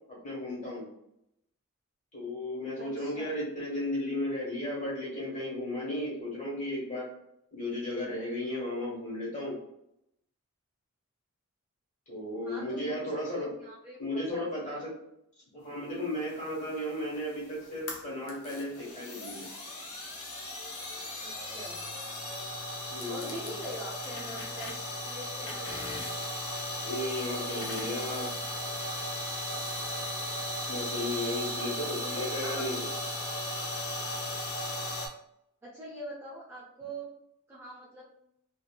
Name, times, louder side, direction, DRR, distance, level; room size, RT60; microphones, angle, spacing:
voice 1, 0.1-0.9 2.1-7.1 7.5-9.5 12.1-13.5 14.0-15.0 15.5-19.4 22.9-23.5 26.8-28.3 30.7-32.9, left 1 dB, 35° left, -5 dB, 1.2 m, -35 dB
voice 2, 2.8-3.4 12.4-14.4 14.7-14.8 21.2-21.8 23.0-25.9 31.7-32.7 35.6-37.1 37.5-38.1, right 1 dB, 10° right, -8 dB, 0.6 m, -43 dB
sound 1, 16.2-35.1, left 1 dB, 75° left, 0.6 m, -36 dB
2.6 x 2.4 x 2.2 m, 0.78 s
head